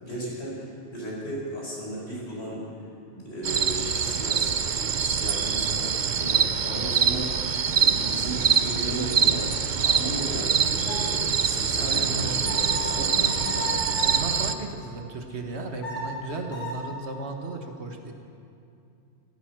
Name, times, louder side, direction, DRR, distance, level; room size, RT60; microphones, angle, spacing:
voice 1, 0.0-2.6 3.1-13.7, equal, 60° left, -5 dB, 5.3 m, -35 dB
The sun comes out. Crickets and frogs., 3.4-14.5, right 7 dB, 50° right, 0.7 m, -25 dB
sound 1, 10.9-14.3 15.5-16.8, equal, 80° left, 4.2 m, -36 dB
voice 2, 11.8-12.4 12.9-13.1 14.0-18.1, right 2 dB, 65° right, 3 dB, 1.7 m, -35 dB
15.5 x 15.0 x 6.1 m, 2.6 s
omnidirectional pair, 1.2 m